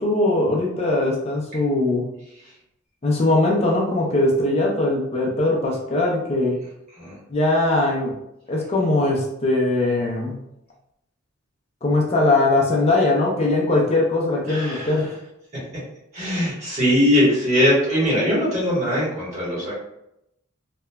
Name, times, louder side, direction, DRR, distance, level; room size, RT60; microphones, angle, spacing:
voice 1, 0.0-2.0 3.0-6.6 7.3-8.1 8.5-10.4 11.8-15.1, left 2 dB, 30° left, -2 dB, 0.4 m, -20 dB
voice 2, 14.5-14.9 16.1-19.8, left 1 dB, 35° right, -8 dB, 1.2 m, -21 dB
2.9 x 2.2 x 2.2 m, 0.82 s
head